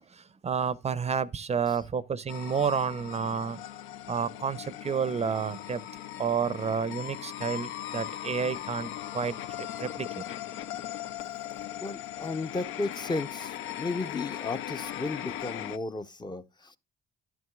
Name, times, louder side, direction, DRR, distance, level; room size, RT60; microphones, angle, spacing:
voice 1, 0.0-3.6 4.1-5.8 6.2-10.2, right 6 dB, 35° right, 0.5 m, -30 dB
sound 1, 2.3-15.8, left 12 dB, 85° left, 0.5 m, -39 dB
voice 2, 11.8-16.8, left 3 dB, 20° left, 0.6 m, -34 dB
10.5 x 9.4 x 2.2 m
cardioid pair, 90°, 20 cm